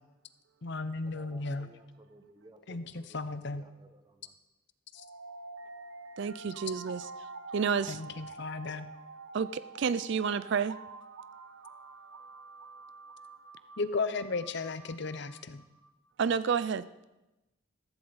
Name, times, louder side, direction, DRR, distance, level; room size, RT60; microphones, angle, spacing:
voice 1, 0.6-1.7 2.7-3.6 7.9-8.9 13.8-15.6, left 3 dB, 55° left, 12 dB, 0.7 m, -35 dB
voice 2, 1.1-4.0, right 1 dB, 20° right, 7 dB, 1.0 m, -56 dB
sound 1, 4.9-15.9, right 3 dB, 70° right, 1.0 m, -48 dB
voice 3, 6.2-7.1 7.5-8.1 9.3-10.8 16.2-16.9, right 6 dB, 55° right, 15 dB, 0.4 m, -30 dB
14.5 x 14.5 x 4.1 m, 1.0 s
head